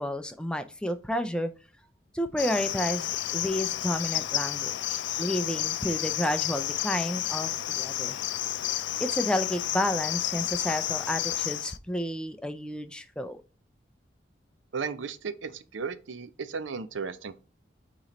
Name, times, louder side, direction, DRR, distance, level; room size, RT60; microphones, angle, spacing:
voice 1, 0.0-1.5 2.1-8.2 9.0-13.4, left 1 dB, 5° left, 0.4 m, -31 dB
Cricket, 2.4-11.8, left 13 dB, 75° left, 0.4 m, -31 dB
voice 2, 14.7-17.4, right 5 dB, 90° right, 0.6 m, -35 dB
8.8 x 3.0 x 4.1 m
head